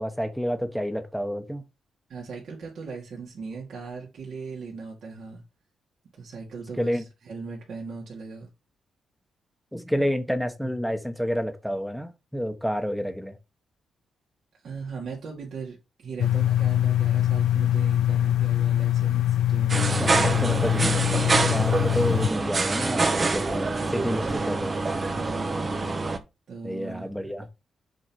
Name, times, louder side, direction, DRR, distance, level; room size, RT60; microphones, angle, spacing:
voice 1, 0.0-1.6 6.8-7.0 9.7-13.4 19.9-21.0 21.5-24.7 26.6-27.5, equal, ahead, 1.2 m, -29 dB
voice 2, 2.1-5.4 6.1-8.5 14.6-20.6 23.7-24.4 25.1-25.5 26.5-27.1, right 4 dB, 65° right, 2.5 m, -39 dB
sound 1, 16.2-22.3, left 12 dB, 80° left, 0.4 m, -23 dB
sound 2, 19.7-26.2, right 3 dB, 35° right, 1.1 m, -26 dB
7.5 x 3.7 x 4.7 m
cardioid pair, 90°, 0 cm